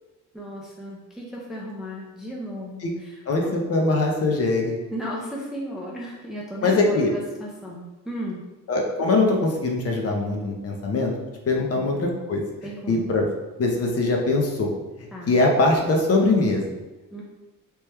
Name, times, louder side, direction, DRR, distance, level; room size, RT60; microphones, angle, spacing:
voice 1, 0.3-3.5 4.9-8.4 11.7-11.9 12.6-13.1 15.1-15.3 17.1-17.2, equal, ahead, -3 dB, 0.4 m, -35 dB
voice 2, 3.3-4.7 6.6-7.1 8.7-11.1 11.5-12.4 12.9-13.3 13.6-14.7 15.3-16.6, left 2 dB, 45° left, 1 dB, 0.6 m, -22 dB
3.0 x 2.2 x 3.2 m, 1.1 s
cardioid pair, 130°, 34 cm